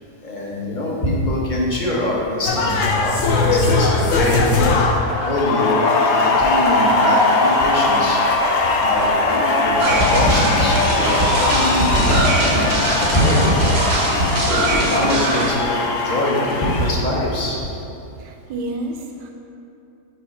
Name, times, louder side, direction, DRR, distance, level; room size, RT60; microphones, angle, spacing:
voice 1, 0.2-4.4 5.2-8.2 8.8-12.6 13.0-13.6 14.3-17.7, left 1 dB, 40° left, -3 dB, 0.8 m, -23 dB
sound 1, 2.5-16.9, left 3 dB, 65° left, 0.8 m, -19 dB
sound 2, 9.8-15.5, right 2 dB, 55° right, 0.8 m, -21 dB
voice 2, 18.2-19.3, right 2 dB, 80° right, 3 dB, 1.2 m, -30 dB
5.7 x 4.6 x 4.1 m, 2.7 s
omnidirectional pair, 1.8 m